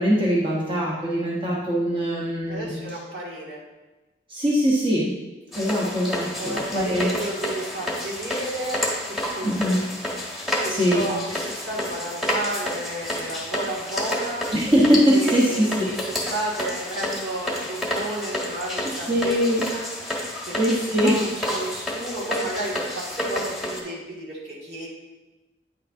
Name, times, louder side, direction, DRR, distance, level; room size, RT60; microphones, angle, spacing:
voice 1, 0.0-2.7 4.3-5.1 5.5-7.1 9.4-9.8 10.7-11.1 14.5-15.9 19.1-19.6 20.6-21.2, equal, 30° right, -6 dB, 1.1 m, -22 dB
voice 2, 2.5-3.6 6.4-9.9 10.6-14.5 15.1-19.4 19.7-20.6 20.9-24.9, right 1 dB, 65° right, -5 dB, 2.2 m, -32 dB
sound 1, 5.5-23.8, left 1 dB, ahead, 1.3 m, -30 dB
9.3 x 6.7 x 2.7 m, 1.1 s
head